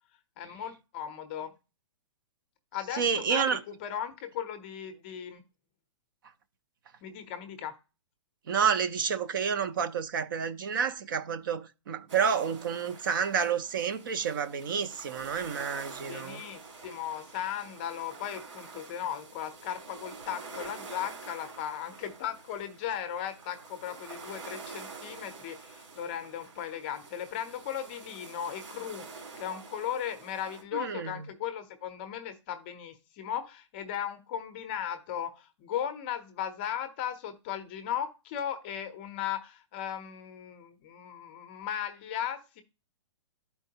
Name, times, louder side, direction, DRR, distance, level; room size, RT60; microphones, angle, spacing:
voice 1, 0.4-1.5 2.7-5.4 7.0-7.7 16.0-42.6, left 9 dB, 20° left, 0.6 m, -37 dB
voice 2, 2.9-3.6 8.5-16.4 30.7-31.1, right 7 dB, 45° right, 0.6 m, -29 dB
sound 1, 12.1-30.6, right 4 dB, 70° right, 2.3 m, -47 dB
11.5 x 4.5 x 2.8 m
hypercardioid pair, 175°, 15 cm